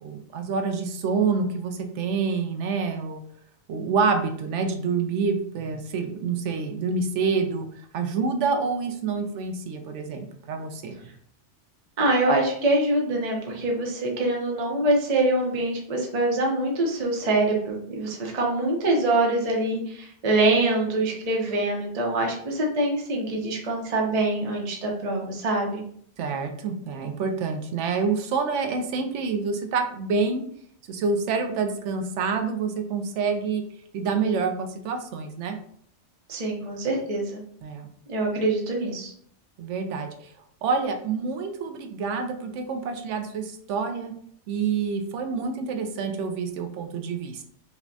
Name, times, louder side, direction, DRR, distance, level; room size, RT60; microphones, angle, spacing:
voice 1, 0.0-3.2 3.7-7.7 7.9-10.9 26.2-30.4 30.9-33.6 33.9-35.6 37.6-37.9 39.6-40.3 40.6-44.1 44.5-47.4, right 5 dB, 85° right, 6 dB, 0.9 m, -27 dB
voice 2, 12.0-25.8 36.3-37.4 38.1-39.1, right 2 dB, 40° right, -1 dB, 0.7 m, -24 dB
5.3 x 2.1 x 2.6 m, 0.62 s
omnidirectional pair, 1.2 m